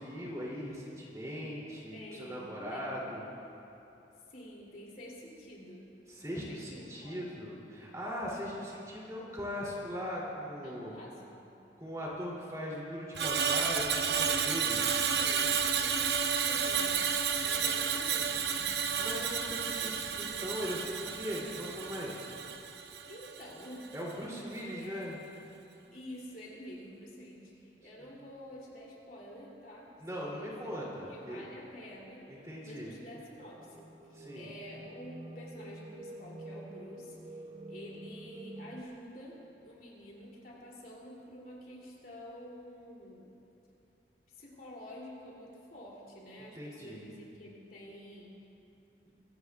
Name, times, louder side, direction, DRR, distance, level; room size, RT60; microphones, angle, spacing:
voice 1, 0.0-3.2 6.1-10.9 11.8-14.8 19.0-22.2 23.9-25.2 28.0-28.1 30.0-31.4 32.3-32.9 34.1-34.5 46.5-47.0, equal, 20° right, -5 dB, 2.9 m, -39 dB
voice 2, 1.9-3.0 4.3-5.9 6.3-7.2 10.6-11.6 14.5-17.1 17.4-18.6 23.1-23.9 24.5-25.0 25.9-30.8 31.1-33.9 34.3-37.4 37.7-43.4 44.3-48.4 49.0-49.2, equal, 50° left, -4 dB, 2.9 m, -49 dB
Screech, 13.1-23.5 23.8-24.1, right 7 dB, 65° right, 0.8 m, -31 dB
Piano, 24.7-25.8, left 2 dB, 85° right, 1.8 m, -53 dB
sound 1, 33.4-38.8, right 1 dB, 35° right, 0.6 m, -48 dB
23.0 x 17.0 x 2.4 m, 2.9 s
head